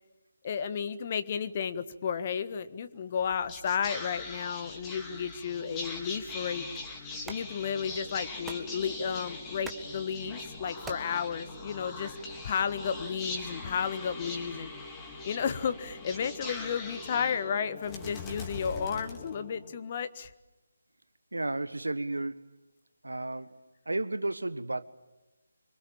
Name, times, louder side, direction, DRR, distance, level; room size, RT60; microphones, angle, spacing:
voice 1, 0.4-6.7 7.2-12.1 12.4-14.7 15.2-20.3, left 7 dB, 35° left, 1.5 m, -33 dB
Whispering, 3.2-19.8, left 3 dB, 15° left, 3.6 m, -41 dB
sound 1, 6.0-12.1, right 4 dB, 5° right, 1.7 m, -50 dB
voice 2, 21.3-22.5 23.0-24.8, right 2 dB, 75° right, 1.4 m, -33 dB
26.5 x 25.0 x 8.8 m
figure-of-eight pair, 150°, 0 cm